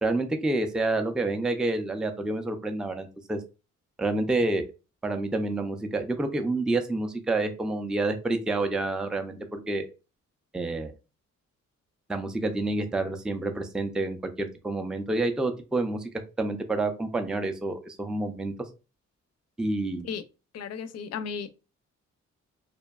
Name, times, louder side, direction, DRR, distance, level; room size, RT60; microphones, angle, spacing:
voice 1, 0.0-3.4 4.0-4.6 5.0-9.9 10.5-10.9 12.1-16.1 16.4-18.5 19.6-20.1, right 2 dB, 5° right, 0.4 m, -28 dB
voice 2, 20.5-21.6, left 6 dB, 60° left, 0.4 m, -35 dB
2.6 x 2.1 x 2.2 m
cardioid pair, 65°, 30 cm